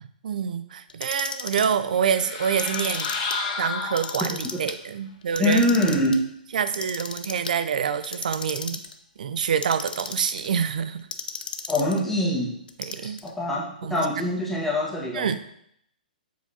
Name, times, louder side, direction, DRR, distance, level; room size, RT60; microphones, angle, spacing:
voice 1, 0.2-3.1 3.6-5.7 6.5-8.8 9.2-11.1 12.8-13.2 13.8-14.0 15.1-15.5, right 7 dB, 60° right, 12 dB, 0.5 m, -26 dB
Clock, 0.9-1.7 2.4-3.4 3.8-4.7 5.2-6.2 6.7-7.5 8.0-8.9 9.4-10.5 11.1-12.0 12.7-13.3, left 5 dB, 70° left, 0.6 m, -34 dB
sound 1, 1.9-4.6, left 4 dB, 40° left, 1.2 m, -31 dB
voice 2, 5.4-6.2 11.7-12.6 13.2-15.3, left 1 dB, 5° left, -5 dB, 1.6 m, -24 dB
7.5 x 4.6 x 2.8 m, 0.70 s
figure-of-eight pair, 120°, 5 cm